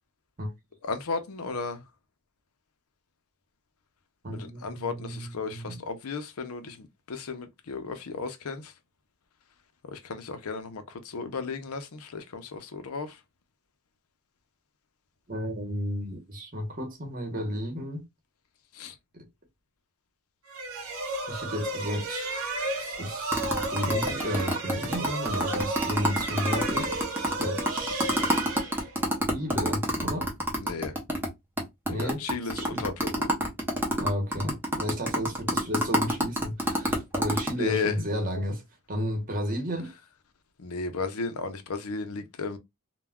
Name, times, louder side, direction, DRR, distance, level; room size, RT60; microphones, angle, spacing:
voice 1, 0.8-1.8 4.3-8.7 9.8-13.2 18.7-18.9 30.6-30.9 31.9-33.3 37.5-37.9 40.6-42.6, left 4 dB, 75° left, 0.5 m, -34 dB
voice 2, 4.2-5.8 15.3-18.0 19.1-19.2 21.3-22.3 22.8-27.1 27.4-28.8 29.3-30.3 31.9-32.2 32.5-32.8 34.0-38.6 38.9-39.9, equal, 40° right, 0.9 m, -33 dB
sound 1, 20.5-29.3, right 2 dB, 70° right, 0.7 m, -33 dB
sound 2, 23.3-31.3 31.6-31.7 31.9-37.5, equal, 10° right, 0.5 m, -27 dB
2.2 x 2.1 x 3.4 m
head